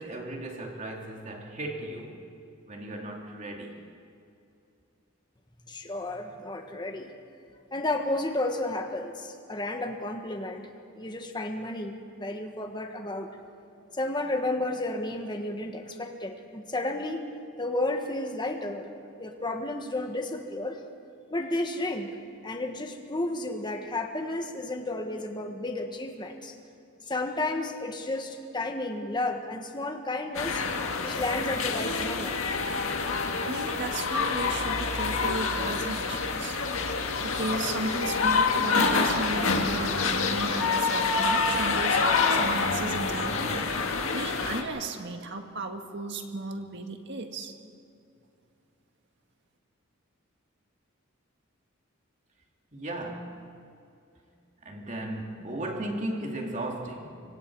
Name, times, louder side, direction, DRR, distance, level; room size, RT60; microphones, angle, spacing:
voice 1, 0.0-2.2 2.7-3.8 52.7-53.4 54.6-57.2, right 1 dB, 35° right, 0 dB, 2.8 m, -36 dB
voice 2, 5.7-7.1 7.7-10.7 10.9-13.3 13.9-17.2 17.6-18.9 19.2-20.8 21.3-22.1 22.4-26.5 27.1-30.6 31.0-32.4, left 2 dB, 20° left, 4 dB, 1.6 m, -32 dB
sound 1, 30.3-44.6, left 4 dB, 75° left, 1.8 m, -27 dB
voice 3, 33.5-36.6 37.2-43.7 44.1-47.5, right 2 dB, 55° right, 5 dB, 1.7 m, -35 dB
25.5 x 24.5 x 4.8 m, 2.5 s
head